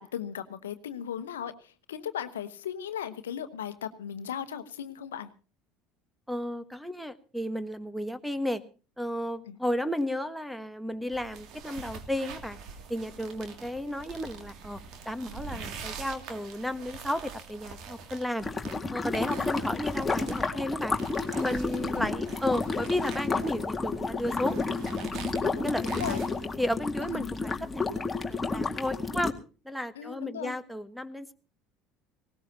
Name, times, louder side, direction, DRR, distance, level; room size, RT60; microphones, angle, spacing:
voice 1, 0.0-5.3 9.5-9.6 19.2-19.5 21.7-22.1 25.9-26.2 27.1-27.3 30.0-30.5, left 9 dB, 85° left, 10 dB, 1.0 m, -37 dB
voice 2, 6.3-8.6 9.0-12.6 12.9-18.5 18.9-21.0 21.3-24.6 25.6-26.2 26.6-28.0 28.3-29.3 29.6-31.3, left 1 dB, ahead, 8 dB, 1.3 m, -33 dB
sound 1, 11.1-26.5, right 5 dB, 55° right, 2.5 m, -44 dB
sound 2, 18.4-29.3, left 3 dB, 15° left, 2.0 m, -31 dB
19.5 x 18.0 x 2.8 m, 0.35 s
hypercardioid pair, 70°, 0 cm